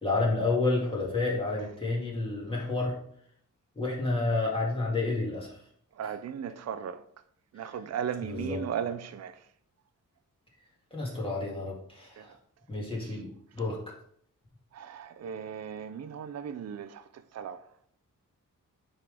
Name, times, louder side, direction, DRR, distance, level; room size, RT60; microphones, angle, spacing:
voice 1, 0.0-2.9 3.8-5.6 8.2-8.6 10.9-12.3 12.7-13.9, left 3 dB, 15° left, 2.2 m, -30 dB
voice 2, 5.9-7.0 7.5-9.5 12.2-12.4 13.0-13.2 14.7-17.7, right 8 dB, 50° right, 0.5 m, -37 dB
9.3 x 3.8 x 3.4 m
wide cardioid pair, 125°, 33 cm